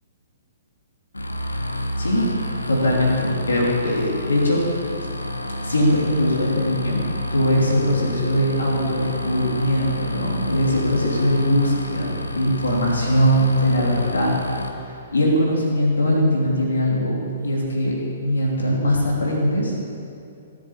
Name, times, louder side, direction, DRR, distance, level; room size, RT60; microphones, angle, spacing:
sound 1, 1.1-14.7, left 1 dB, 90° left, 1.2 m, -30 dB
voice 1, 2.0-2.3 2.7-4.6 5.6-7.0 7.3-14.3 15.1-17.2 17.4-17.9 18.2-19.7, equal, 75° left, -3 dB, 3.1 m, -21 dB
18.5 x 7.6 x 7.2 m, 2.6 s
figure-of-eight pair, 120°, 0 cm